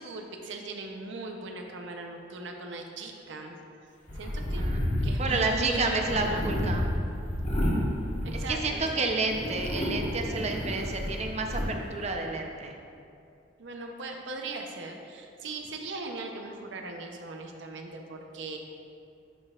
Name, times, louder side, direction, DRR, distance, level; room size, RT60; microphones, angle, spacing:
voice 1, 0.0-3.6 4.1-4.6 5.0-6.4 8.2-9.0 13.6-18.6, right 3 dB, 75° right, 3 dB, 0.7 m, -39 dB
sound 1, 4.1-8.9 9.2-11.6, equal, 40° left, 1.3 m, -31 dB
voice 2, 4.5-4.8 5.2-6.9 8.3-12.7, right 3 dB, 35° right, 3 dB, 0.6 m, -30 dB
11.0 x 5.4 x 2.4 m, 2.5 s
head